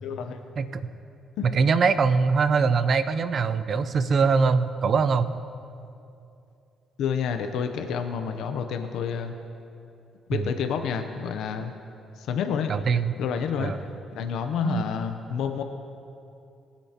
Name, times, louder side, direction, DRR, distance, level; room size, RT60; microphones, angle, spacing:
voice 1, 0.0-0.4 1.4-1.5 7.0-9.3 10.3-11.7 12.2-12.7 13.2-13.7 14.1-15.6, left 7 dB, 80° left, 6 dB, 0.7 m, -29 dB
voice 2, 1.5-5.3 10.3-10.5 12.7-13.1 13.6-13.8 14.6-14.9, right 5 dB, 50° right, 12 dB, 0.6 m, -22 dB
21.5 x 8.3 x 2.9 m, 2.6 s
cardioid pair, 90°, 0 cm